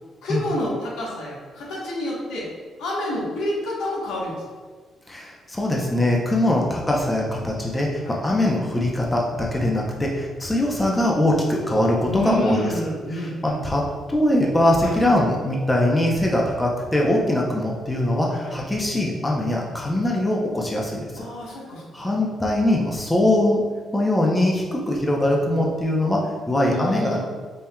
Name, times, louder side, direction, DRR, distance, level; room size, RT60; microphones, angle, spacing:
voice 1, 0.2-2.5 2.8-4.4 8.0-8.2 12.1-13.6 14.8-14.9 18.4-18.5 21.2-22.1 26.5-27.2, left 1 dB, 80° left, -4 dB, 1.2 m, -28 dB
voice 2, 5.1-21.2 21.9-23.6 23.9-27.2, left 1 dB, 15° left, -2 dB, 0.7 m, -22 dB
5.4 x 2.9 x 2.2 m, 1.5 s
cardioid pair, 90°, 0 cm